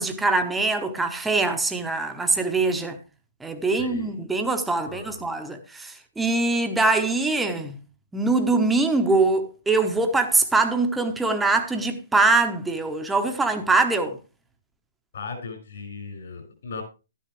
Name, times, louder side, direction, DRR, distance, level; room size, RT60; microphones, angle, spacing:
voice 1, 0.0-3.0 3.4-7.8 8.1-14.2, right 3 dB, 5° right, 1.0 m, -23 dB
voice 2, 3.7-4.1 4.9-5.3 15.1-16.8, left 4 dB, 65° left, 5.5 m, -37 dB
11.5 x 10.0 x 3.2 m
hypercardioid pair, 140°, 0 cm